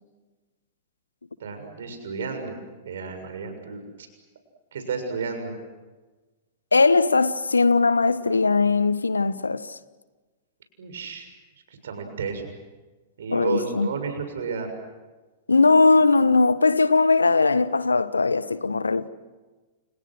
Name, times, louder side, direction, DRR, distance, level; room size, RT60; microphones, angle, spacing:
voice 1, 1.4-4.1 4.7-5.6 10.8-11.3 11.7-12.5 13.2-14.7, right 5 dB, 65° right, 6.9 m, -32 dB
voice 2, 6.7-9.8 13.3-13.9 15.5-19.1, left 3 dB, 80° left, 1.2 m, -19 dB
29.5 x 29.5 x 6.4 m
figure-of-eight pair, 100°, 0 cm